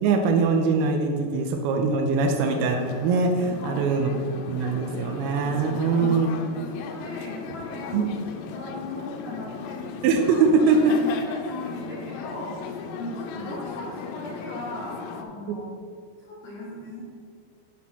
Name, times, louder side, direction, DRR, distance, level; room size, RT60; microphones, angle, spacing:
voice 1, 0.0-4.1 4.5-6.3 7.9-8.1 10.0-10.9 15.5-15.6, right 4 dB, 80° right, 3 dB, 2.3 m, -22 dB
sound 1, 2.3-15.2, left 6 dB, 80° left, 2.7 m, -37 dB
voice 2, 3.6-3.9 5.8-8.1 8.3-9.8 10.7-15.7 16.2-17.0, left 1 dB, 65° left, -7 dB, 2.1 m, -38 dB
7.4 x 6.2 x 5.7 m, 2.1 s
omnidirectional pair, 5.0 m